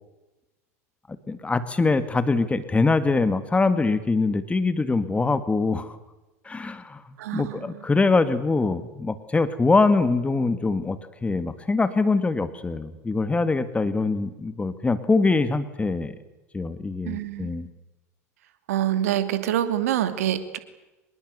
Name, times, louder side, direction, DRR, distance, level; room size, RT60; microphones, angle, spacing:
voice 1, 1.3-6.0 6.5-7.0 7.3-16.1 16.5-17.7, left 3 dB, 15° left, 12 dB, 1.9 m, -23 dB
voice 2, 7.2-7.9 17.0-17.5 18.7-20.6, right 11 dB, 70° right, 11 dB, 2.6 m, -26 dB
25.5 x 21.5 x 8.2 m, 1.0 s
hypercardioid pair, 80°, 8 cm